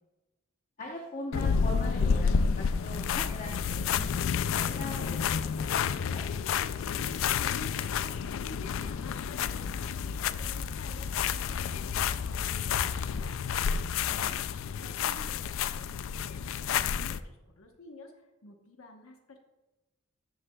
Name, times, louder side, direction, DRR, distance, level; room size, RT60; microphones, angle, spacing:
voice 1, 0.8-6.2 14.1-14.4, left 1 dB, 35° left, -1 dB, 0.9 m, -41 dB
sound 1, 1.3-17.2, left 6 dB, 70° left, 0.3 m, -30 dB
voice 2, 6.9-8.2 8.4-13.5 14.2-19.4, left 2 dB, 90° left, 3 dB, 1.0 m, -51 dB
12.5 x 7.8 x 2.3 m, 1.1 s
head